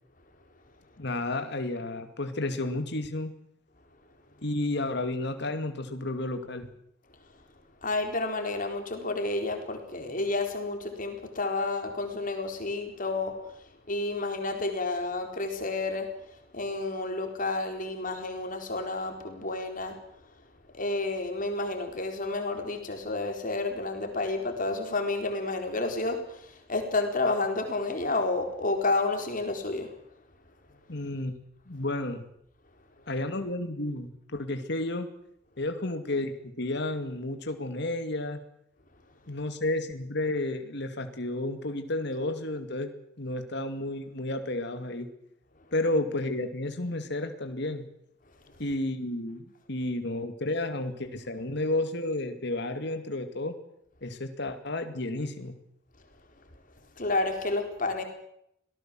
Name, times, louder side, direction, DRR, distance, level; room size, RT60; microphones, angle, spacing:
voice 1, 1.0-3.3 4.4-6.7 30.9-31.3 31.7-32.2 33.1-35.1 35.6-38.4 39.3-42.9 43.2-45.1 45.7-47.8 48.6-53.6 54.0-55.5, left 2 dB, 60° left, 7 dB, 2.4 m, -31 dB
voice 2, 7.8-20.0 20.7-29.9 48.4-48.6 57.0-58.0, left 2 dB, 45° left, 5 dB, 4.3 m, -30 dB
26.0 x 18.5 x 7.7 m, 0.75 s
head